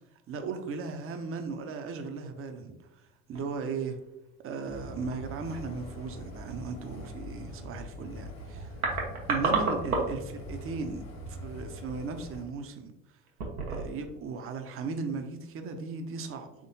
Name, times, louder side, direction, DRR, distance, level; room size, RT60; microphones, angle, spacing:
voice 1, 0.3-4.0 4.4-8.7 9.3-12.9 13.7-16.5, right 4 dB, 30° right, 6 dB, 0.6 m, -37 dB
sound 1, 3.3-3.7 3.9-4.1 4.8-5.2 8.2-8.3 8.6-10.3 10.6-10.8 11.5-11.7 12.3-12.5 13.3-14.1 14.3-14.4, right 4 dB, 90° right, 0.7 m, -31 dB
sound 2, 4.7-12.4, equal, 60° left, 1.4 m, -43 dB
3.6 x 3.6 x 2.6 m, 0.88 s
figure-of-eight pair, 50°, 42 cm